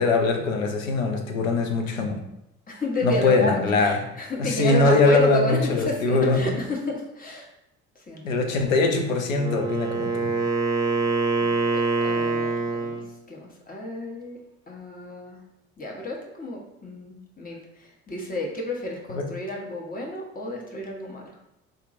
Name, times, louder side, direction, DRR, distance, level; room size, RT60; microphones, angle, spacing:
voice 1, 0.0-2.2 3.0-4.0 4.4-6.4 8.2-10.3 19.1-19.3, left 3 dB, 85° left, 4 dB, 0.6 m, -22 dB
voice 2, 2.7-7.5 7.9-8.4 11.4-13.0 13.3-14.4 14.7-15.4 15.8-21.4, left 1 dB, 20° left, -1 dB, 1.0 m, -31 dB
Wind instrument woodwind instrument, 9.2-13.1, right 3 dB, 10° right, 0.7 m, -25 dB
3.9 x 2.8 x 2.5 m, 0.85 s
figure-of-eight pair, 55°, 39 cm